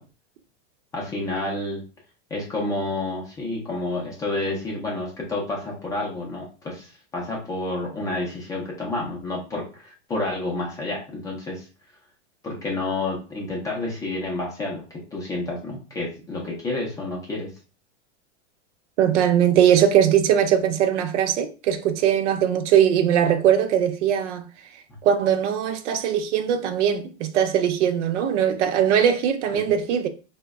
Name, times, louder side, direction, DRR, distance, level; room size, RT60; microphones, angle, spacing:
voice 1, 0.9-1.8 2.3-11.6 12.4-17.5 29.5-29.7, left 2 dB, 10° left, 0.4 m, -29 dB
voice 2, 19.0-24.5 25.0-30.1, right 9 dB, 80° right, 0.6 m, -20 dB
2.9 x 2.1 x 3.5 m
supercardioid pair, 160°, 35 cm